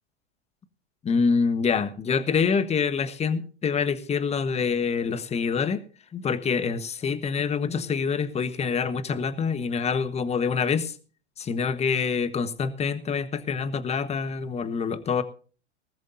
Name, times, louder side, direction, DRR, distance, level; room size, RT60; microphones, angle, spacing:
voice 1, 1.0-5.8 6.1-10.9 11.4-15.2, left 5 dB, 20° left, 14 dB, 1.3 m, -26 dB
19.5 x 13.5 x 2.7 m, 0.38 s
hypercardioid pair, 115°, 34 cm